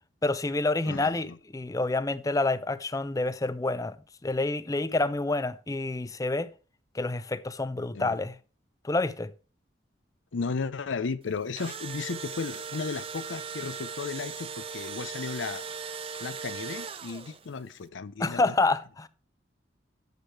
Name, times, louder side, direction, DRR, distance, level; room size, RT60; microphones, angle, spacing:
voice 1, 0.2-4.0 4.2-6.5 6.9-8.4 8.8-9.3 18.2-19.1, left 2 dB, 20° left, 0.5 m, -28 dB
voice 2, 0.9-1.4 7.9-8.2 10.3-15.6 16.2-18.5, left 4 dB, 90° left, 0.6 m, -34 dB
Engine / Drill, 11.3-17.6, right 6 dB, 30° right, 0.6 m, -38 dB
9.3 x 6.5 x 4.6 m
head